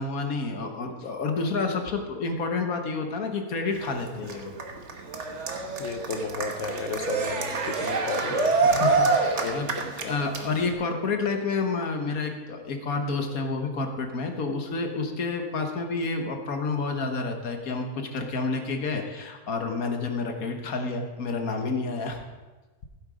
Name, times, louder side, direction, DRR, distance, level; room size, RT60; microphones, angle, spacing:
voice 1, 0.0-4.5 8.6-9.7 10.0-22.2, left 3 dB, 75° left, 4 dB, 1.7 m, -29 dB
Cheering, 3.7-10.7, right 4 dB, 55° right, 1.5 m, -27 dB
voice 2, 5.8-8.8 9.4-9.8, left 4 dB, 55° left, 8 dB, 1.2 m, -33 dB
15.5 x 8.0 x 5.0 m, 1.2 s
omnidirectional pair, 1.5 m